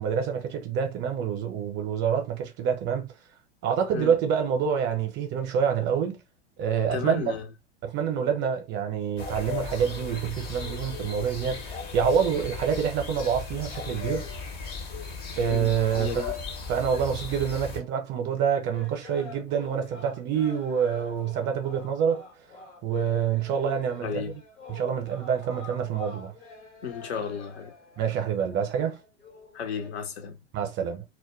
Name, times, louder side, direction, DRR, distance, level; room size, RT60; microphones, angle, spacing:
voice 1, 0.0-3.1 3.6-6.2 6.6-7.3 7.8-14.3 15.4-16.1 16.7-22.2 22.8-24.2 24.7-26.3 28.0-29.0 30.5-31.0, right 7 dB, 30° right, 0.6 m, -27 dB
voice 2, 6.9-7.5 15.5-15.7 16.0-16.4 24.0-24.4 26.8-27.7 29.5-30.4, left 7 dB, 65° left, 0.7 m, -33 dB
sound 1, 9.2-17.8, left 5 dB, 30° left, 0.6 m, -36 dB
sound 2, 18.7-29.9, left 2 dB, 80° left, 1.1 m, -47 dB
2.2 x 2.1 x 3.0 m
figure-of-eight pair, 95°, 35 cm